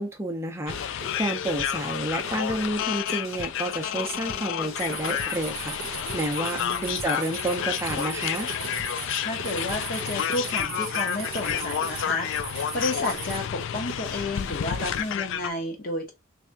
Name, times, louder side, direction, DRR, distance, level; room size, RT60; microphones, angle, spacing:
voice 1, 0.0-8.5, right 1 dB, 15° right, 0.6 m, -30 dB
sound 1, 0.7-15.2, left 1 dB, 80° left, 1.3 m, -42 dB
sound 2, 0.7-15.5, left 10 dB, 60° left, 0.3 m, -30 dB
sound 3, 4.8-13.4, right 9 dB, 75° right, 0.6 m, -39 dB
voice 2, 6.6-6.9 9.2-12.3 12.7-16.1, left 1 dB, 45° left, 1.2 m, -31 dB
3.3 x 3.3 x 2.7 m
head